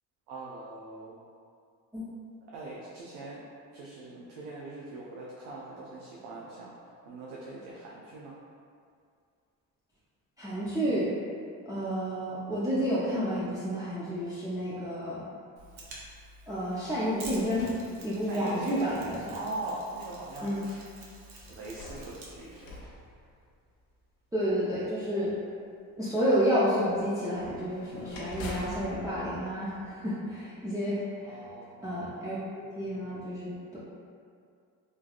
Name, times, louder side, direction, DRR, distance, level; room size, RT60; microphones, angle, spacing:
voice 1, 0.3-1.3 2.5-3.4 3.7-6.7 7.1-8.3 18.2-18.9 19.3-20.9 21.4-22.9 31.2-32.0, right 2 dB, 90° right, -5 dB, 0.5 m, -41 dB
voice 2, 10.4-11.1 11.7-15.2 16.5-17.7 18.0-19.3 20.4-20.6 24.3-25.3 26.0-31.4 31.8-32.4 32.7-33.8, equal, 10° right, -10 dB, 0.5 m, -30 dB
Mechanisms, 15.6-22.8, right 2 dB, 60° right, 0.8 m, -49 dB
sound 1, 16.7-18.7 19.4-19.5 21.4-24.0 27.3-30.4, left 1 dB, 85° left, 0.6 m, -45 dB
3.2 x 2.3 x 2.4 m, 2.3 s
supercardioid pair, 65°, 43 cm